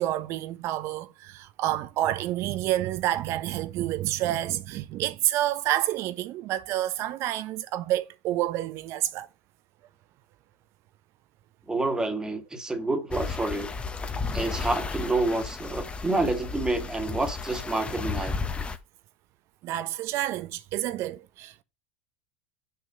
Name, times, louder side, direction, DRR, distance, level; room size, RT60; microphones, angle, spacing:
voice 1, 0.0-9.3 19.6-21.6, right 14 dB, 50° right, 1.0 m, -29 dB
voice 2, 11.7-13.7 14.3-18.4, right 2 dB, 10° right, 2.0 m, -28 dB
sound 1, 13.1-18.8, left 4 dB, 20° left, 1.2 m, -33 dB
6.9 x 6.4 x 6.4 m
hypercardioid pair, 100°, 6 cm